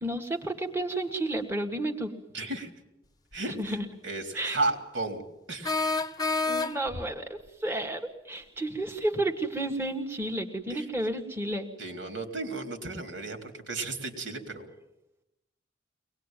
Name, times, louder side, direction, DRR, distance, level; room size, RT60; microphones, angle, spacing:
voice 1, 0.0-2.1 3.6-3.8 4.3-4.6 6.5-11.7, right 1 dB, 15° right, 3 dB, 1.6 m, -31 dB
voice 2, 2.3-2.7 3.3-5.2 5.5-5.9 10.7-10.9 11.8-14.6, right 2 dB, 80° right, 5 dB, 3.6 m, -34 dB
sound 1, 3.3-3.4 5.6-7.1, left 3 dB, 20° left, 0.9 m, -28 dB
23.5 x 20.0 x 9.1 m, 0.89 s
head